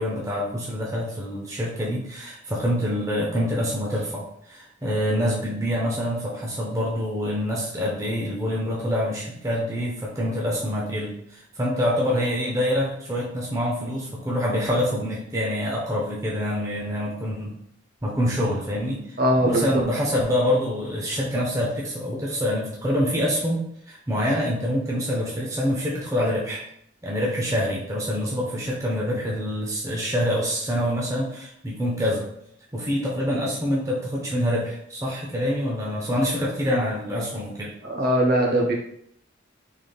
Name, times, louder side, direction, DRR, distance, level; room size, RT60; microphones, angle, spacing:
voice 1, 0.0-4.2 4.5-17.6 18.0-26.6 27.0-32.3 32.7-37.8, equal, 15° right, -4 dB, 0.6 m, -26 dB
voice 2, 19.2-19.8 37.8-38.7, right 1 dB, 50° right, -1 dB, 0.8 m, -21 dB
3.6 x 3.2 x 2.3 m, 0.70 s
head